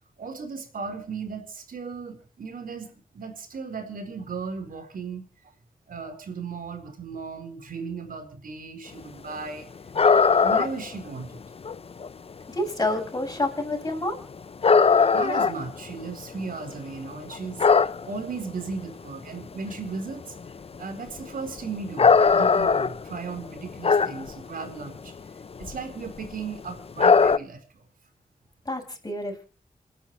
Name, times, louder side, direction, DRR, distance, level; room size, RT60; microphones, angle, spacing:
voice 1, 0.2-5.2 5.9-9.7 10.4-11.4 15.1-20.3 20.8-25.1 25.6-27.8, right 4 dB, 75° right, 5 dB, 4.3 m, -36 dB
sound 1, 9.9-10.9 11.2-11.3 11.6-12.1 13.1-13.3 13.9-14.0 14.6-16.7 17.0-18.4 18.9-19.0 19.3-19.4 19.7-20.0 20.3-20.6 21.2-24.3 24.6-24.9 25.4-25.8 26.1-26.3 27.0-27.4, left 5 dB, 40° left, 0.6 m, -20 dB
voice 2, 12.5-14.2 28.7-29.4, left 1 dB, 25° left, 1 dB, 7.1 m, -28 dB
28.0 x 10.0 x 3.1 m, 0.35 s
cardioid pair, 75°, 15 cm